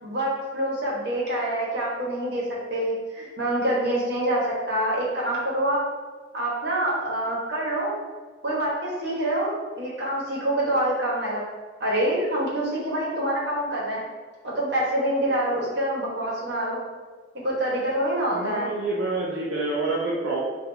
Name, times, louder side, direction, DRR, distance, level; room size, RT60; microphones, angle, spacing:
voice 1, 0.0-5.8 6.3-7.9 8.4-11.4 11.8-14.0 14.4-16.8 17.3-18.7, right 1 dB, 55° right, -5 dB, 1.3 m, -26 dB
voice 2, 18.3-20.4, right 2 dB, 75° right, -5 dB, 0.6 m, -27 dB
5.8 x 2.5 x 2.8 m, 1.4 s
head